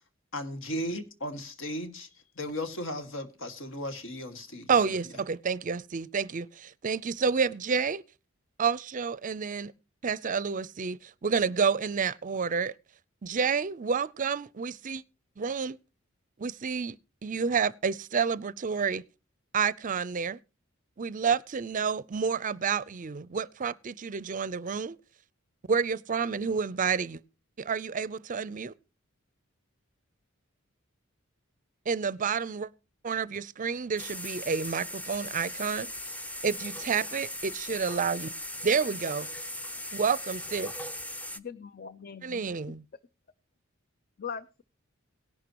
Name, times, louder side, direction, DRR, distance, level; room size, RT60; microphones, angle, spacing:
voice 1, 0.3-2.1 2.4-4.7, left 1 dB, 65° left, 2.0 m, -36 dB
voice 2, 4.7-8.0 8.6-9.7 10.0-12.7 13.2-15.0 15.4-15.8 16.4-17.0 17.2-19.0 19.5-20.4 21.0-25.0 25.7-27.2 27.6-28.7 31.9-32.7 33.0-35.9 36.4-38.3 38.6-39.3 39.9-40.7 42.2-42.8, right 6 dB, 40° right, 0.5 m, -29 dB
sound 1, 34.0-41.4, left 1 dB, 5° left, 0.7 m, -39 dB
voice 3, 41.4-42.4 42.7-42.8 44.2-44.6, left 6 dB, 45° left, 0.6 m, -40 dB
18.0 x 11.0 x 3.0 m
head